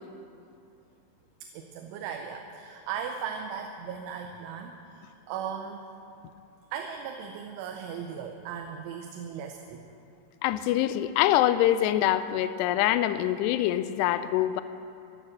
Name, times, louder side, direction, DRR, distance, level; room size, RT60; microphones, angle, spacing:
voice 1, 1.4-5.8 6.7-9.8, right 7 dB, 90° right, 4 dB, 3.2 m, -37 dB
voice 2, 10.4-14.6, left 13 dB, 85° left, 13 dB, 2.4 m, -24 dB
13.5 x 12.0 x 7.4 m, 2.6 s
omnidirectional pair, 5.3 m